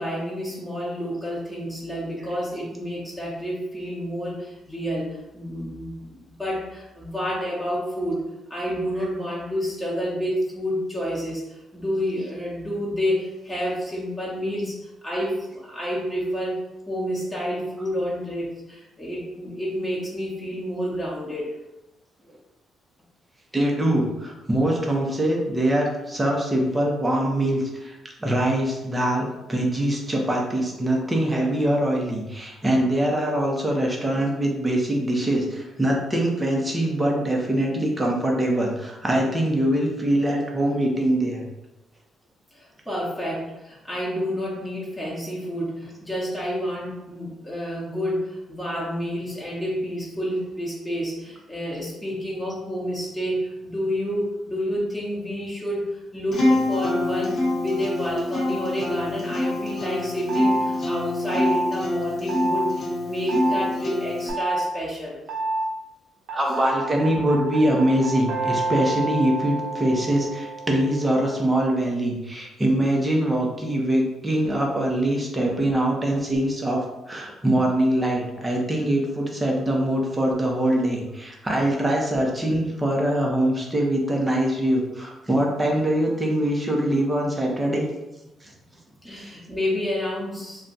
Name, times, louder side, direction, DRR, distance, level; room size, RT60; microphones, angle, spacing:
voice 1, 0.0-8.2 8.5-21.5 42.5-65.2 75.4-75.5 89.0-90.7, equal, ahead, -7 dB, 1.1 m, -29 dB
voice 2, 23.5-41.4 66.3-87.9 88.4-88.5, right 1 dB, 15° right, -1 dB, 0.7 m, -23 dB
Acoustic guitar, 56.3-64.3, left 2 dB, 45° left, 0.9 m, -25 dB
sound 1, 60.3-60.6 61.3-61.7 62.3-62.7 63.3-63.6 64.3-64.6 65.3-65.7 66.3-71.4, right 3 dB, 70° right, 0.6 m, -28 dB
2.4 x 2.2 x 3.9 m, 0.97 s
cardioid pair, 90°, 0 cm